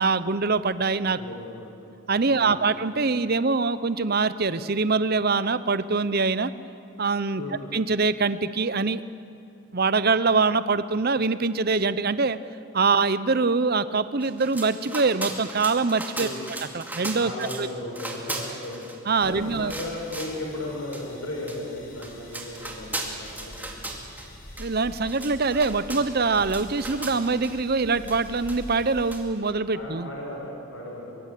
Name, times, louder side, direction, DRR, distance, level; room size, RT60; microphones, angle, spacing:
voice 1, 0.0-1.2 2.1-6.5 7.0-7.4 7.7-9.0 9.7-12.4 12.7-16.3 16.7-17.7 19.1-19.7 24.6-30.1, right 4 dB, 45° right, 14 dB, 0.8 m, -24 dB
voice 2, 1.2-1.6 2.3-2.7 7.4-7.6 16.2-16.5 17.2-18.8 19.2-23.7 29.7-31.2, left 1 dB, 70° left, -1 dB, 5.4 m, -36 dB
sound 1, 14.2-17.7 17.9-19.3 19.7-20.4 20.9-21.0 21.5-21.6 21.9-24.3 24.6-24.7 25.0-27.5 28.1-28.8 29.1-29.2, right 2 dB, 10° right, 2.3 m, -37 dB
sound 2, 19.1-29.2, left 1 dB, 40° left, 4.6 m, -45 dB
23.5 x 23.0 x 8.5 m, 2.5 s
head